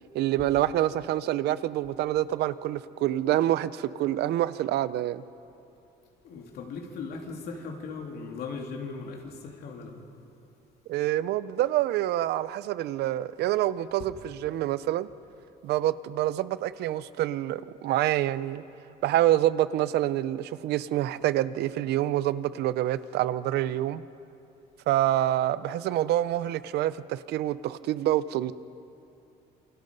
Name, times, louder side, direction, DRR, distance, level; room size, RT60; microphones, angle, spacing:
voice 1, 0.1-5.2 10.9-15.1 15.6-18.6 19.0-24.0 24.9-28.5, right 13 dB, 75° right, 16 dB, 0.6 m, -27 dB
voice 2, 6.2-10.0 14.0-14.1, left 4 dB, 70° left, 2 dB, 3.1 m, -38 dB
28.0 x 24.0 x 5.4 m, 2.8 s
cardioid pair, 110°, 17 cm